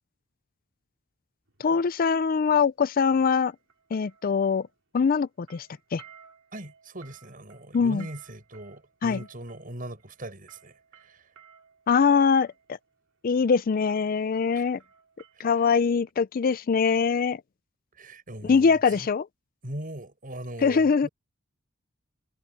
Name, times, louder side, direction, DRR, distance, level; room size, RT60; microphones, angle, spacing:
sound 1, 1.5-1.7 3.4-4.7 5.0-12.7 13.4-13.6 13.9-15.8 16.1-16.2, right 7 dB, 75° right, 6.4 m, -56 dB
voice 1, 1.6-3.5 3.9-4.7 4.9-6.0 7.7-8.1 9.0-9.2 11.9-12.8 13.2-14.8 15.4-17.4 18.4-19.3 20.6-21.1, left 5 dB, 45° left, 0.4 m, -23 dB
voice 2, 6.5-11.3 14.5-14.7 15.3-15.5 17.9-19.1 19.6-21.1, right 1 dB, 45° right, 7.3 m, -40 dB
head